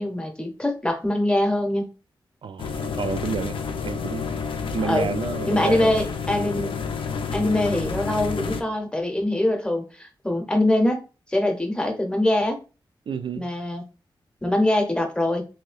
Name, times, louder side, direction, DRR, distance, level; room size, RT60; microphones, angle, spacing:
voice 1, 0.0-1.9 4.8-5.1 5.5-6.8 7.3-11.0 11.3-12.6 13.4-13.8 14.4-15.5, left 1 dB, 10° left, 0.8 m, -23 dB
voice 2, 2.4-4.2 4.7-6.0 13.1-13.5, right 5 dB, 65° right, 0.4 m, -30 dB
sound 1, 2.6-8.6, left 5 dB, 80° left, 0.4 m, -29 dB
2.7 x 2.7 x 3.2 m
wide cardioid pair, 85°, 9 cm